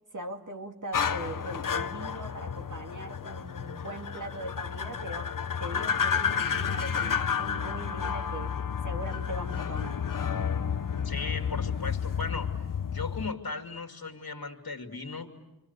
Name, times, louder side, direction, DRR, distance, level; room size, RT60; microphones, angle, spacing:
voice 1, 0.1-10.0, right 1 dB, 55° right, 5 dB, 2.4 m, -40 dB
sound 1, 0.9-13.3, left 7 dB, 60° left, 0.9 m, -31 dB
voice 2, 11.0-15.3, left 4 dB, 75° left, 4 dB, 2.5 m, -37 dB
27.5 x 26.5 x 8.1 m, 1.0 s
wide cardioid pair, 70°, 36 cm